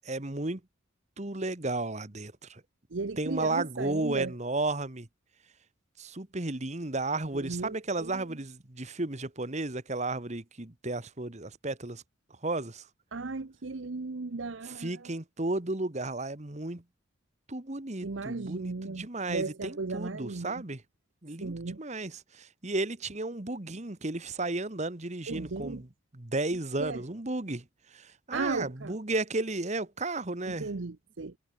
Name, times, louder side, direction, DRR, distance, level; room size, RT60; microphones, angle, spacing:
voice 1, 0.0-0.6 1.2-2.6 3.2-5.1 6.0-12.0 12.4-12.8 14.7-16.8 17.5-20.8 21.2-22.1 22.4-25.8 26.2-27.6 27.9-30.7, right 2 dB, 35° right, 1.5 m, -33 dB
voice 2, 2.9-4.3 7.3-8.4 13.1-15.2 18.0-20.6 21.4-21.8 25.3-25.8 26.8-27.0 28.3-29.0 30.5-31.4, right 3 dB, 70° right, 0.8 m, -36 dB
head